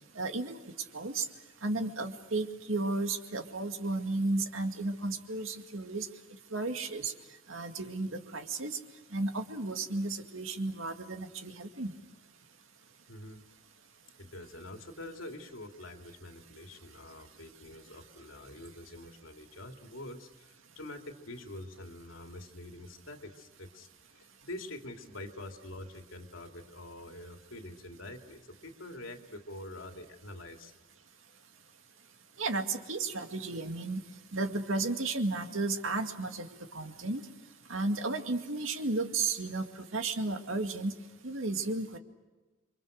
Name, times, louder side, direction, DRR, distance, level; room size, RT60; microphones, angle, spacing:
voice 1, 0.2-0.6 0.9-1.3 1.6-6.1 6.5-7.1 7.5-8.8 9.1-11.9 32.4-34.0 34.3-36.5 36.7-37.2 37.7-40.9 41.2-42.0, right 3 dB, 75° right, 6 dB, 2.2 m, -33 dB
voice 2, 13.1-13.4 14.2-23.9 24.4-30.7, left 1 dB, 80° left, 4 dB, 2.7 m, -46 dB
29.0 x 24.5 x 6.5 m, 1.2 s
head